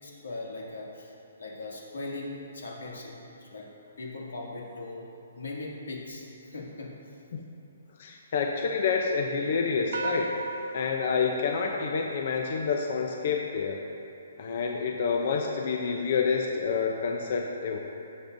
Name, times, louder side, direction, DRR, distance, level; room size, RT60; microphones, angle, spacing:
voice 1, 0.0-3.1 3.4-3.7 4.0-5.1 5.3-7.1, left 2 dB, 85° left, -3 dB, 2.2 m, -39 dB
voice 2, 8.0-10.3 10.7-13.8 14.4-17.8, left 5 dB, 40° left, 1 dB, 0.6 m, -28 dB
sound 1, 9.9-12.5, right 1 dB, 50° right, 0.8 m, -35 dB
17.5 x 7.1 x 2.6 m, 2.8 s
hypercardioid pair, 175°, 0 cm